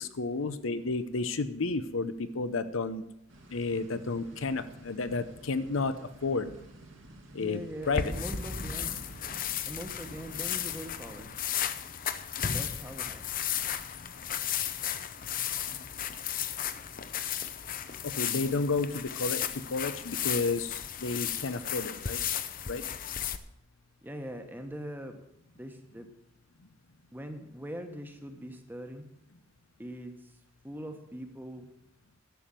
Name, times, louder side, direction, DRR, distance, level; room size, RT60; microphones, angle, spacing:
voice 1, 0.0-3.0 3.5-5.9 6.2-6.5 7.3-7.6 7.9-8.1 15.7-15.9 18.0-22.2 22.7-22.8, left 3 dB, 85° left, 12 dB, 0.8 m, -31 dB
sound 1, 3.3-10.9, right 1 dB, 80° right, 2.8 m, -47 dB
voice 2, 7.3-9.0 9.7-11.4 12.5-13.2 24.0-25.2 25.5-26.1 27.1-29.0 29.8-30.3 30.6-31.7, equal, 10° right, 5 dB, 1.2 m, -42 dB
sound 2, 7.8-23.4, left 9 dB, 45° left, 0.7 m, -34 dB
11.5 x 7.0 x 7.6 m, 0.77 s
head